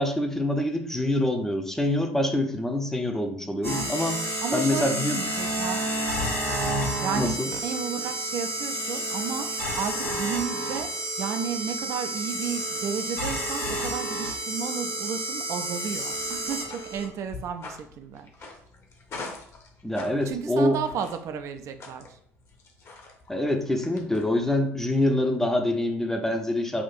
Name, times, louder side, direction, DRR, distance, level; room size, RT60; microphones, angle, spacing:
voice 1, 0.0-4.2 4.5-5.2 7.2-7.5 19.8-20.8 23.3-26.8, left 1 dB, 5° left, 3 dB, 0.7 m, -25 dB
sound 1, 3.6-17.0, right 1 dB, 80° left, 1.3 m, -30 dB
voice 2, 4.4-5.9 7.0-18.6 20.2-22.2, right 6 dB, 45° right, 7 dB, 0.5 m, -33 dB
sound 2, 16.1-24.6, left 3 dB, 40° left, 1.0 m, -45 dB
5.7 x 2.5 x 2.5 m, 0.64 s
figure-of-eight pair, 60°, 7 cm